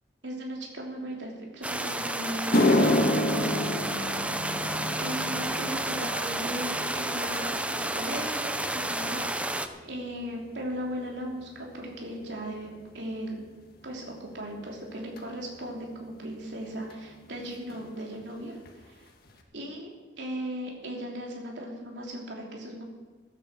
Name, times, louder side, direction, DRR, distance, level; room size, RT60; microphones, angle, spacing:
voice 1, 0.2-3.1 4.6-13.4 13.8-18.6 18.8-19.1 19.5-19.9 20.2-22.8, equal, 80° right, -1 dB, 3.2 m, -37 dB
sound 1, 1.6-9.7, right 1 dB, 5° right, 0.7 m, -31 dB
sound 2, 1.8-1.9 2.3-10.8 11.1-11.6 12.3-12.4 15.2-15.3 16.9-17.0 17.2-17.4 17.7-18.2 18.6-18.7 19.3-19.4, left 1 dB, 60° left, 1.7 m, -30 dB
15.5 x 9.1 x 7.4 m, 1.3 s
head